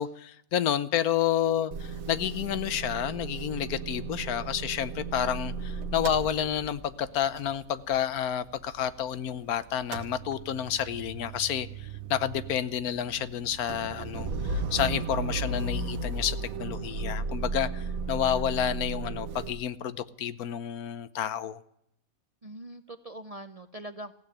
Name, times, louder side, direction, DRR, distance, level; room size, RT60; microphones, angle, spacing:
voice 1, 0.0-21.6, left 10 dB, 80° left, 1.3 m, -30 dB
Motor vehicle (road) / Engine starting / Idling, 1.7-9.4 9.7-19.5, right 3 dB, 70° right, 1.5 m, -35 dB
voice 2, 18.1-18.4 22.4-24.1, right 1 dB, 40° right, 0.5 m, -43 dB
15.5 x 8.7 x 10.0 m
omnidirectional pair, 1.6 m